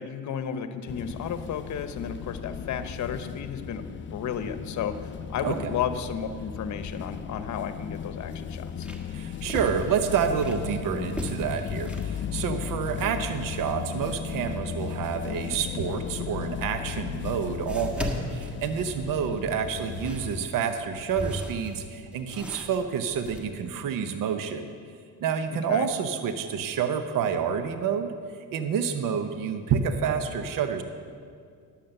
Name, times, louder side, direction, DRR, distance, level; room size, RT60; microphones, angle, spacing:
voice 1, 0.0-3.8 4.1-8.9 25.5-25.9, left 7 dB, 50° left, 10 dB, 0.9 m, -33 dB
sound 1, 0.9-20.5, left 8 dB, 35° left, 0.4 m, -36 dB
voice 2, 5.4-5.7 9.1-24.6 25.2-28.1 28.5-30.8, right 7 dB, 60° right, 8 dB, 0.8 m, -28 dB
sound 2, 7.6-7.7 8.3-10.7 11.1-12.2 16.4-16.5 17.6-19.2 19.7-23.4, left 1 dB, 5° right, 1.4 m, -37 dB
10.5 x 7.4 x 6.6 m, 2.2 s
cardioid pair, 90°, 37 cm